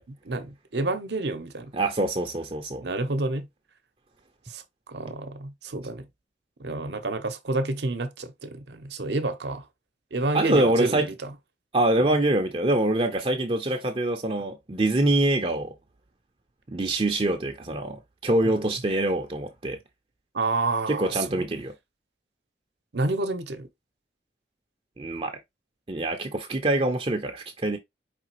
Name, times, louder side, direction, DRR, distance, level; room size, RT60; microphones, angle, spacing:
voice 1, 0.1-1.7 2.8-3.5 4.5-6.1 6.6-9.7 10.1-11.1 12.0-12.2 18.4-18.7 20.3-21.5 22.9-23.7, right 2 dB, 70° right, 0.8 m, -29 dB
voice 2, 1.7-2.8 10.3-11.1 11.7-15.7 16.7-19.8 20.9-21.7 25.0-25.4 25.9-27.8, right 1 dB, 30° right, 0.6 m, -25 dB
5.0 x 3.3 x 2.9 m
head